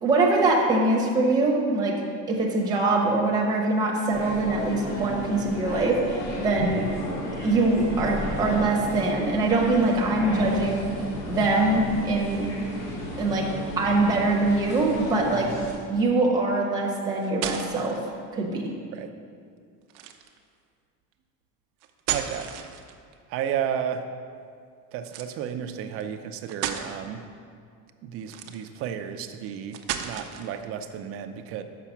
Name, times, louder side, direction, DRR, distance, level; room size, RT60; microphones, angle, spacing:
voice 1, 0.0-6.8 7.4-10.9 11.3-12.5 13.2-13.5 13.8-15.5 15.9-18.0 18.3-18.7, right 2 dB, 10° right, -2 dB, 0.8 m, -23 dB
sound 1, 4.1-15.7, left 1 dB, 50° left, 1.9 m, -33 dB
sound 2, 17.2-18.0 19.9-20.4 21.8-23.1 25.0-25.3 26.0-26.1 26.5-26.9 28.2-28.8 29.7-30.6, right 10 dB, 90° right, 0.7 m, -33 dB
voice 2, 22.1-22.5 23.3-24.1 24.9-27.2 28.0-31.6, right 8 dB, 45° right, 8 dB, 0.5 m, -32 dB
5.8 x 5.8 x 7.0 m, 2.3 s
cardioid pair, 180°, 33 cm